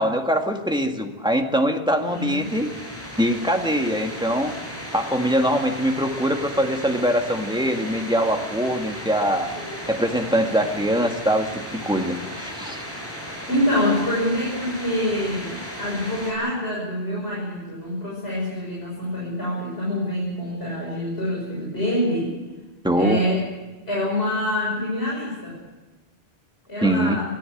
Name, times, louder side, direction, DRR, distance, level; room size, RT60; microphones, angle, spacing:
voice 1, 0.0-2.7 3.2-4.6 4.9-9.5 9.9-12.8 22.8-23.2 26.8-27.2, equal, 5° right, 3 dB, 1.9 m, -23 dB
sound 1, 1.9-16.3, equal, 10° left, 7.0 m, -36 dB
voice 2, 2.1-2.5 9.5-9.9 13.5-22.3 22.9-23.4 23.9-25.6 26.7-27.2, left 1 dB, 70° left, -5 dB, 6.7 m, -26 dB
22.5 x 14.5 x 10.0 m, 1.2 s
omnidirectional pair, 1.1 m